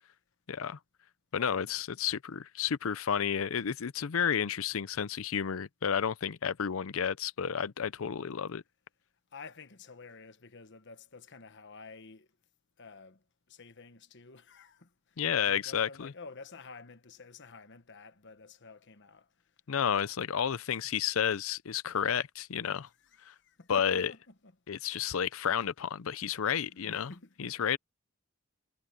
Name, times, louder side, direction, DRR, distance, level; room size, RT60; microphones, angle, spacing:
voice 1, 0.5-0.8 1.3-8.6 15.2-16.1 19.7-22.9 23.2-23.3 23.7-24.1 24.7-27.1 27.4-27.8, left 8 dB, 70° left, 0.5 m, -31 dB
voice 2, 1.4-1.7 9.3-12.3 12.8-19.3 20.4-20.7 23.0-24.5 25.0-25.2 26.7-27.7, left 4 dB, 55° left, 1.2 m, -51 dB
head